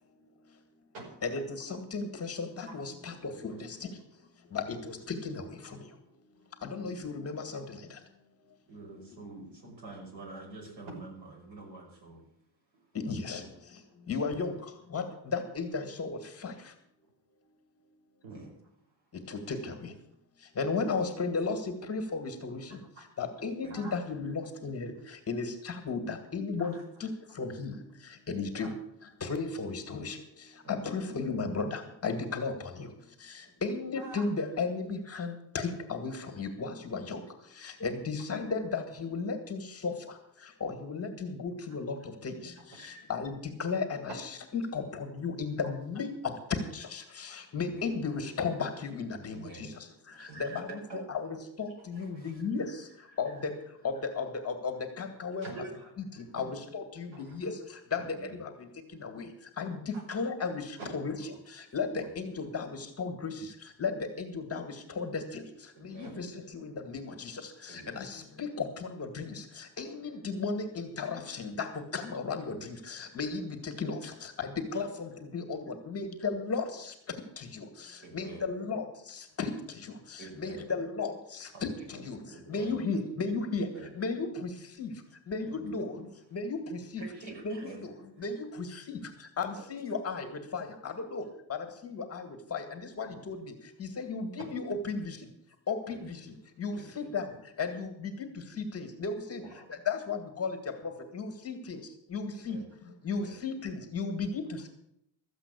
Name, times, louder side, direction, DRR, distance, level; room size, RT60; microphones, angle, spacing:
voice 1, 1.2-3.9 4.5-5.5 6.6-7.6 12.9-13.4 14.1-14.5 14.9-16.5 19.3-19.9 20.6-21.6 21.9-22.6 23.2-27.1 27.4-27.8 28.3-28.7 29.2-30.2 30.7-32.9 33.2-37.2 37.6-39.9 40.6-42.0 42.2-43.3 43.6-46.3 46.7-49.7 50.2-50.7 50.9-52.7 53.2-53.5 53.8-55.4 56.3-57.5 57.9-58.5 59.0-59.3 59.6-61.2 61.5-63.3 63.8-65.4 65.8-71.7 71.9-76.9 77.4-79.5 79.8-82.2 82.5-83.7 84.0-84.5 84.8-84.9 85.3-85.9 86.3-87.0 87.4-87.9 88.2-89.0 89.4-91.2 91.5-93.5 93.8-95.2 95.7-96.2 96.6-97.3 97.6-98.3 98.6-99.4 99.9-100.6 100.8-101.8 102.1-102.6 103.0-104.7, left 4 dB, 30° left, 6 dB, 2.0 m, -35 dB
voice 2, 8.7-12.3 18.3-18.5 23.6-23.8 30.6-31.0 43.6-43.7 47.5-47.9 49.3-49.8 50.1-51.0 51.8-52.4 53.3-53.5 58.1-58.4 61.9-62.2 65.8-66.2 67.7-68.1 72.1-72.2 74.7-74.8 78.0-78.4 80.2-80.7 81.5-81.9 82.3-82.8 83.7-83.9 85.4-85.8 87.0-87.8 89.6-89.7 95.9-96.1 96.7-97.1 99.4-99.6 102.4-102.7 103.1-103.4, right 3 dB, 60° right, 0 dB, 5.9 m, -48 dB
voice 3, 13.3-13.8 14.3-14.4 18.2-18.4 23.0-23.1 23.7-24.0 26.6-26.8 28.6-28.7 34.0-34.3 42.7-43.1 55.4-56.4 57.1-57.4 59.9-60.3 60.8-60.9 66.0-66.1 69.7-70.1 93.0-93.2 94.4-94.5 96.7-96.9 99.4-99.7, right 2 dB, 80° right, 1 dB, 5.6 m, -47 dB
14.0 x 8.1 x 8.4 m, 0.76 s
cardioid pair, 155°, 46 cm